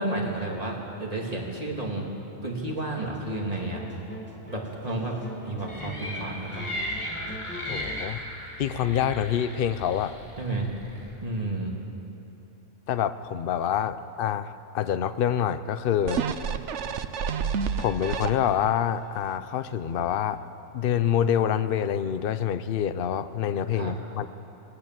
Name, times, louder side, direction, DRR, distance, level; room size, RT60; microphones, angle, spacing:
voice 1, 0.0-2.1 2.4-3.8 4.5-6.7 10.4-10.7 11.2-11.7 23.7-23.9, right 2 dB, 30° right, -2 dB, 2.7 m, -31 dB
sound 1, 2.7-8.1, right 1 dB, 10° left, 2.3 m, -41 dB
sound 2, 5.7-11.1, left 1 dB, 75° left, 4.1 m, -36 dB
voice 2, 7.7-8.2 8.6-10.1 12.9-16.2 17.8-20.4 20.7-24.3, left 9 dB, 55° left, 12 dB, 0.8 m, -26 dB
sound 3, 16.1-18.8 19.3-19.4, right 6 dB, 70° right, 1.1 m, -29 dB
19.5 x 19.0 x 7.6 m, 2.9 s
omnidirectional pair, 1.3 m